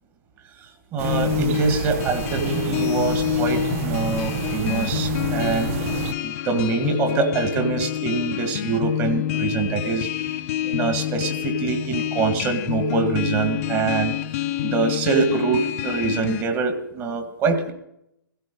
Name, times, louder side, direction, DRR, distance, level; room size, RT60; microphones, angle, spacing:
voice 1, 0.6-10.1 10.6-14.1 14.6-17.7, right 4 dB, 25° right, 6 dB, 2.0 m, -25 dB
sound 1, 1.0-16.4, left 12 dB, 40° left, 0.9 m, -27 dB
sound 2, 1.0-6.1, right 9 dB, 40° right, 0.7 m, -29 dB
16.0 x 15.0 x 5.4 m, 0.81 s
hypercardioid pair, 145°, 11 cm